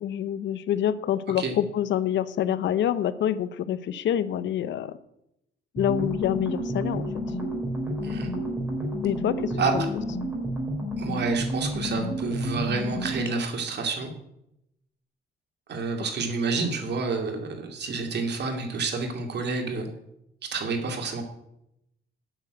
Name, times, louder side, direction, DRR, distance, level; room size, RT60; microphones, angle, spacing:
voice 1, 0.0-5.0 5.7-7.3 9.0-9.8, left 10 dB, 70° left, 15 dB, 0.7 m, -27 dB
sound 1, 5.8-13.4, equal, 10° right, 4.4 m, -30 dB
voice 2, 8.0-8.3 9.6-9.7 11.0-14.1 15.7-19.9 20.5-21.2, right 4 dB, 60° right, 3 dB, 2.4 m, -29 dB
8.8 x 6.6 x 7.9 m, 0.82 s
cardioid pair, 90°, 20 cm